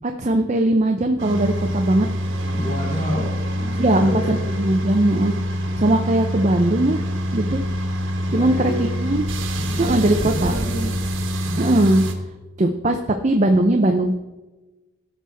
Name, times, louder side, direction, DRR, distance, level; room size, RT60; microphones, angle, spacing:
voice 1, 0.0-2.1 3.8-5.3 5.8-7.0 7.3-7.6 8.3-9.3 9.8-10.2 10.4-10.5 11.6-12.0 12.6-13.0 13.2-14.1, right 1 dB, 35° right, 5 dB, 0.6 m, -19 dB
sound 1, 1.2-12.1, equal, 80° right, 1.4 m, -25 dB
voice 2, 2.5-4.4 8.3-8.9 9.6-11.0 11.5-11.6, equal, 35° left, -7 dB, 2.8 m, -29 dB
17.0 x 6.2 x 3.4 m, 1.1 s
head